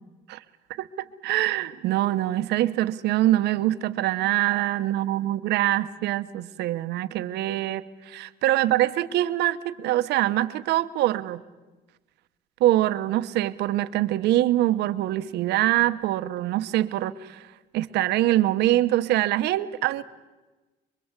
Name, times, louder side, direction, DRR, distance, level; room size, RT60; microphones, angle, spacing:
voice 1, 0.8-11.4 12.6-20.0, right 14 dB, 80° right, 10 dB, 1.1 m, -24 dB
25.5 x 22.5 x 8.2 m, 1.2 s
cardioid pair, 110°, 17 cm